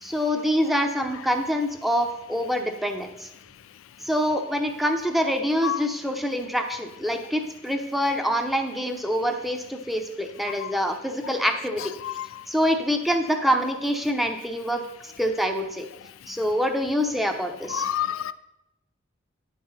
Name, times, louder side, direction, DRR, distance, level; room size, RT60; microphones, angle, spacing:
voice 1, 0.0-3.3 4.0-11.8 12.5-15.9 16.3-17.9, equal, ahead, 5 dB, 0.8 m, -25 dB
voice 2, 17.7-18.3, left 10 dB, 85° left, 14 dB, 0.4 m, -28 dB
9.2 x 5.8 x 5.6 m, 0.87 s
head